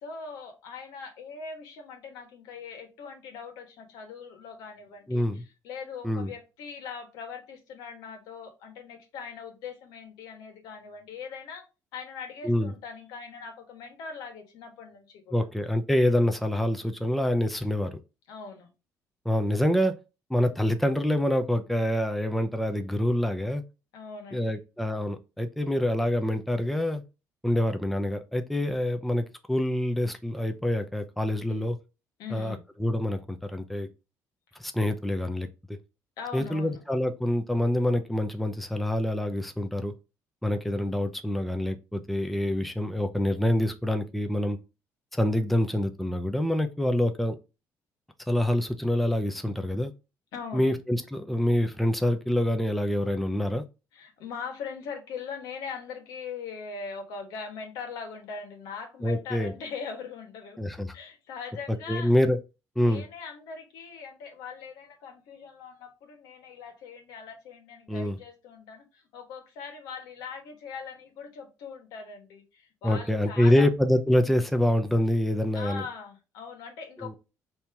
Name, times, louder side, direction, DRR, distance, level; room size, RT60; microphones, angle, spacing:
voice 1, 0.0-11.6 11.9-15.4 18.3-18.7 23.9-24.6 31.5-31.7 32.2-32.6 36.2-36.8 50.3-50.7 53.9-60.6 60.9-62.1 62.8-73.7 75.5-77.2, left 5 dB, 85° left, 1.3 m, -41 dB
voice 2, 5.1-5.4 6.0-6.3 12.4-12.7 15.3-18.0 19.2-20.0 20.3-23.6 24.3-27.0 27.4-31.8 32.3-33.9 34.6-35.8 36.3-39.9 40.4-44.6 45.1-47.4 48.3-49.9 50.5-53.6 59.0-59.5 60.6-60.9 61.9-62.4 62.8-63.0 67.9-68.2 72.8-75.8 77.0-77.2, left 1 dB, ahead, 0.6 m, -26 dB
4.3 x 2.8 x 3.4 m
cardioid pair, 100°, 6 cm